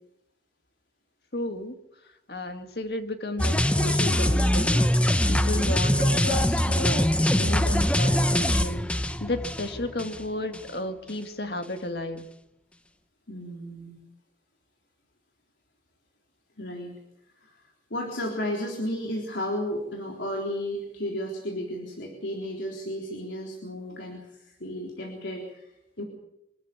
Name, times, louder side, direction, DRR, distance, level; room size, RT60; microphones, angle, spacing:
voice 1, 1.3-1.8 2.3-4.9 5.3-12.3, left 1 dB, 60° left, 7 dB, 2.0 m, -33 dB
sound 1, 3.4-10.2 10.5-10.7, left 1 dB, 5° left, 0.7 m, -23 dB
voice 2, 13.3-14.0 16.6-17.0 17.4-26.0, equal, 90° left, -1 dB, 3.7 m, -33 dB
25.5 x 13.5 x 8.7 m, 0.85 s
head